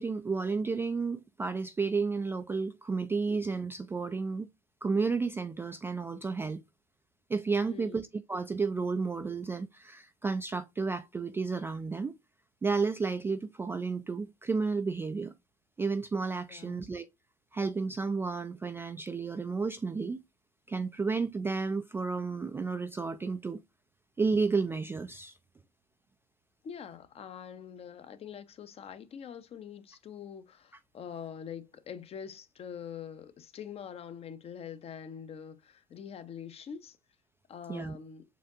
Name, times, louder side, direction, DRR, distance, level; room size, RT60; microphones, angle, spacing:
voice 1, 0.0-4.5 4.8-6.6 7.3-12.2 12.6-15.3 15.8-17.1 17.5-20.2 20.7-23.6 24.2-25.3 37.7-38.0, right 4 dB, 10° right, 0.3 m, -32 dB
voice 2, 7.7-8.0 16.5-16.9 26.6-37.0 37.5-38.2, left 8 dB, 30° left, 0.6 m, -44 dB
6.8 x 2.6 x 2.4 m
figure-of-eight pair, 70°, 20 cm